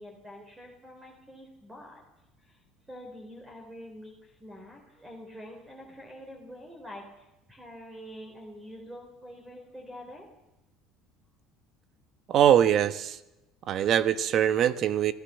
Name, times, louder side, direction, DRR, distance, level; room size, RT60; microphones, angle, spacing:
voice 1, 0.0-2.0 2.4-2.6 2.9-10.3, equal, 10° right, 2 dB, 4.3 m, -46 dB
voice 2, 12.3-13.2 13.7-15.1, right 10 dB, 50° right, 12 dB, 1.3 m, -22 dB
25.5 x 15.5 x 7.0 m, 0.96 s
cardioid pair, 120°, 0 cm